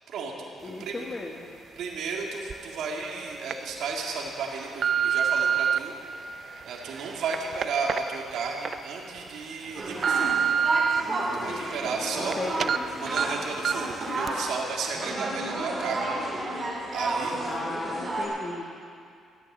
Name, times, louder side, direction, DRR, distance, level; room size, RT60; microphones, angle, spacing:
voice 1, 0.1-0.5 0.8-1.0 1.8-5.9 6.7-10.3 11.3-12.6 13.0-16.1 16.9-17.4, right 4 dB, 75° right, -1 dB, 2.1 m, -33 dB
voice 2, 0.6-1.6 12.1-12.7 17.5-18.8, left 2 dB, 30° left, 0 dB, 1.4 m, -36 dB
sound 1, 2.5-2.6 3.2-3.5 4.2-5.8 6.4-8.7 9.2-9.3 9.7-11.0 11.4-12.3 12.6-12.8 13.2-13.3 13.6-13.9 14.3-14.4, right 7 dB, 55° right, 0.4 m, -27 dB
sound 2, 9.8-18.3, right 1 dB, 35° right, 4.5 m, -31 dB
14.0 x 9.6 x 7.5 m, 2.3 s
cardioid pair, 90°, 0 cm